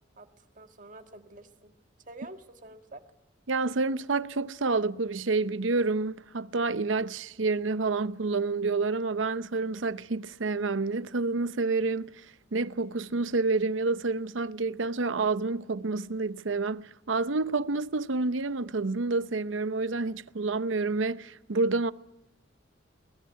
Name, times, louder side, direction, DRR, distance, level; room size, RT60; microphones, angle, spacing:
voice 1, 0.2-1.7 2.1-3.0, right 2 dB, 45° right, 1.7 m, -48 dB
voice 2, 3.5-12.3 12.5-21.9, right 3 dB, 90° right, 0.8 m, -28 dB
22.5 x 19.5 x 9.4 m
head